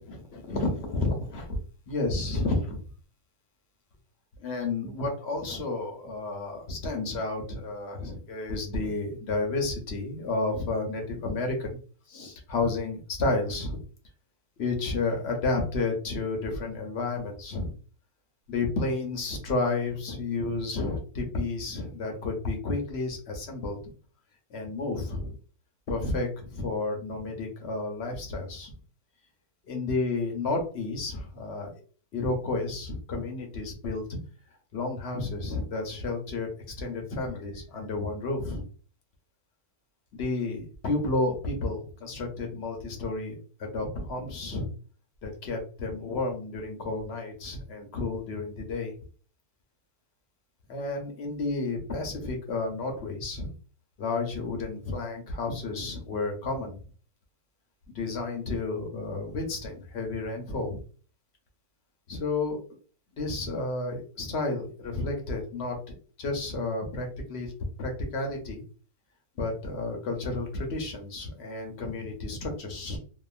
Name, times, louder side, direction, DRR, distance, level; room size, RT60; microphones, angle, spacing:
voice 1, 0.0-1.6 1.9-2.8 4.4-11.7 12.1-13.8 14.6-17.7 18.5-23.8 24.5-25.4 25.9-28.8 29.7-31.8 32.1-34.2 34.7-36.5 36.8-38.6 40.2-43.3 43.6-44.7 45.2-48.9 50.7-53.5 54.0-56.8 57.9-60.8 62.1-62.6 63.1-67.5 67.8-68.6 69.4-73.0, left 3 dB, 55° left, 2 dB, 0.8 m, -31 dB
2.8 x 2.3 x 2.3 m, 0.41 s
omnidirectional pair, 1.6 m